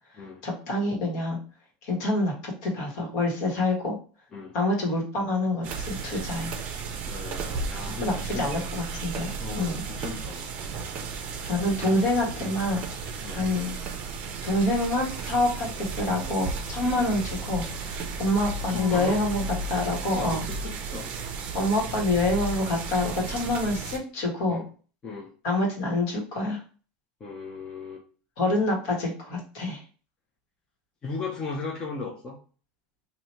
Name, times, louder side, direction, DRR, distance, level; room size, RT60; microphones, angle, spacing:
voice 1, 0.4-1.4 1.8-4.0 4.5-6.5 8.0-9.3 9.6-9.8 11.4-12.8 13.3-13.7 14.4-20.4 21.5-24.6 25.4-26.6 28.4-29.8, left 2 dB, 60° left, -1 dB, 1.6 m, -26 dB
sound 1, 5.6-24.0, right 4 dB, 30° right, 0.6 m, -34 dB
voice 2, 7.1-8.7 9.4-10.5 13.2-13.5 16.8-17.0 18.7-19.2 20.2-21.1 24.5-24.7 25.0-25.3 27.2-28.0 31.0-32.4, left 4 dB, 20° left, -1 dB, 0.5 m, -37 dB
2.9 x 2.6 x 4.3 m, 0.39 s
supercardioid pair, 165°, 4 cm